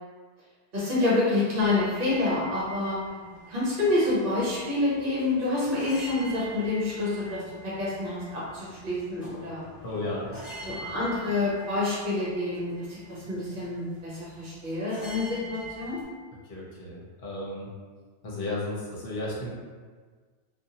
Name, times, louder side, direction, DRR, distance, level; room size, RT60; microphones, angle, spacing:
voice 1, 0.7-3.0 3.5-9.6 10.6-16.0, left 2 dB, 50° right, -8 dB, 1.0 m, -28 dB
sound 1, 1.6-16.0, right 1 dB, 15° left, 0.8 m, -45 dB
voice 2, 9.8-10.7 16.4-17.7 18.2-19.6, left 2 dB, 55° left, -5 dB, 0.9 m, -34 dB
2.6 x 2.4 x 2.7 m, 1.5 s
omnidirectional pair, 1.2 m